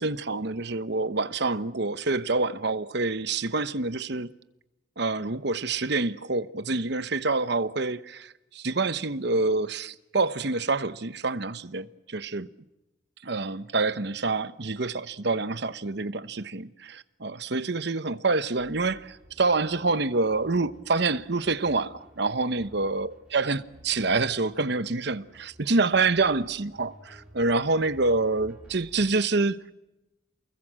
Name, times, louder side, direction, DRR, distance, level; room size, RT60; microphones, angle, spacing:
voice 1, 0.0-4.3 5.0-12.5 13.2-29.7, right 3 dB, 55° right, 1.0 m, -27 dB
sound 1, 18.6-29.1, equal, 5° right, 5.5 m, -54 dB
29.0 x 21.0 x 7.5 m
head